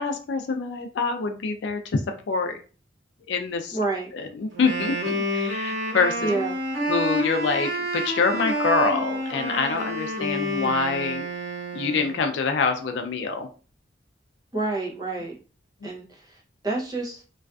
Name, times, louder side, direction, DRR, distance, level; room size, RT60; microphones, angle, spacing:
voice 1, 0.0-2.6 3.3-3.8 4.1-6.3 6.9-11.2 11.7-13.5, left 4 dB, 70° left, 6 dB, 0.4 m, -25 dB
voice 2, 3.7-4.1 6.2-6.6 14.5-15.3 15.8-17.2, right 3 dB, 20° right, -2 dB, 0.6 m, -29 dB
Wind instrument woodwind instrument, 4.5-12.3, equal, 80° right, 0.9 m, -29 dB
2.4 x 2.3 x 2.3 m, 0.37 s
head